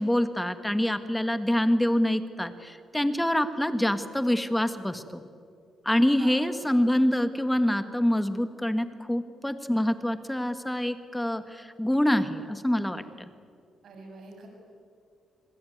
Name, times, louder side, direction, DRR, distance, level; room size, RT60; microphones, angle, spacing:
voice 1, 0.0-5.2 5.9-13.0, left 1 dB, 5° left, 10 dB, 1.8 m, -26 dB
voice 2, 13.8-14.5, right 3 dB, 65° right, 2 dB, 7.1 m, -46 dB
28.5 x 21.5 x 9.4 m, 2.3 s
cardioid pair, 105°, 0 cm